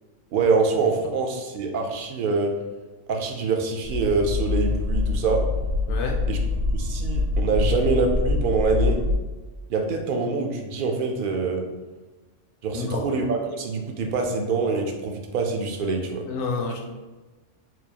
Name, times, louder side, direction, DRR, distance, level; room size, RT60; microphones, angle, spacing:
voice 1, 0.3-2.5 3.1-5.5 6.3-6.4 6.7-9.0 9.7-11.6 12.6-16.2, right 4 dB, 65° right, 3 dB, 0.5 m, -25 dB
sound 1, 3.8-9.2, left 3 dB, 80° right, 1.4 m, -25 dB
voice 2, 5.9-6.2 12.7-13.0 16.3-16.8, left 4 dB, 70° left, 1 dB, 0.8 m, -29 dB
4.4 x 2.4 x 2.8 m, 1.2 s
omnidirectional pair, 1.3 m